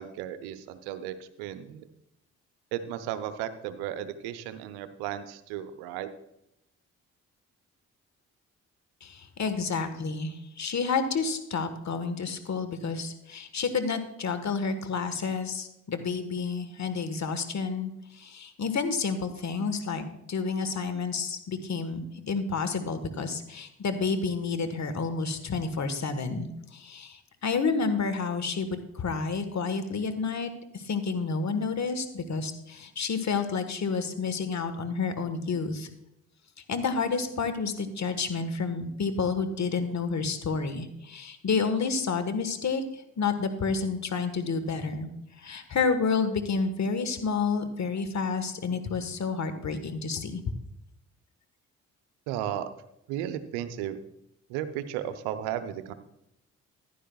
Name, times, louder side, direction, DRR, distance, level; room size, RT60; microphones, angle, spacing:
voice 1, 0.0-1.9 2.7-6.1 52.3-52.6 53.1-54.0 54.5-55.9, right 11 dB, 80° right, 11 dB, 0.8 m, -34 dB
voice 2, 9.0-35.9 36.7-50.4, left 5 dB, 45° left, 9 dB, 1.4 m, -30 dB
15.0 x 11.0 x 2.3 m, 0.83 s
hypercardioid pair, 45°, 38 cm